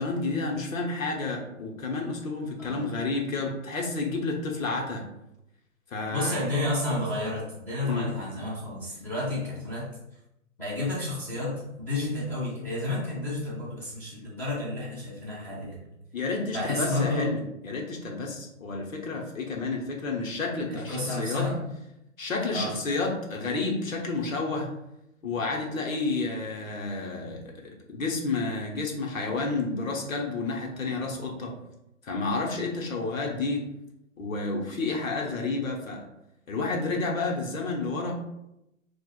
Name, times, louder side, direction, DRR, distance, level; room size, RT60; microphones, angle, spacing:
voice 1, 0.0-5.0 5.9-6.3 7.8-8.1 16.1-21.5 22.2-24.7 25.2-31.5 32.0-33.6 34.2-36.0 36.5-38.2, left 3 dB, 80° left, 0 dB, 1.0 m, -30 dB
voice 2, 2.6-2.9 6.1-9.9 10.6-15.8 16.5-17.3 20.7-21.6 22.5-22.7, left 2 dB, 5° left, -10 dB, 0.8 m, -31 dB
4.5 x 2.4 x 2.3 m, 0.86 s
hypercardioid pair, 150°, 40 cm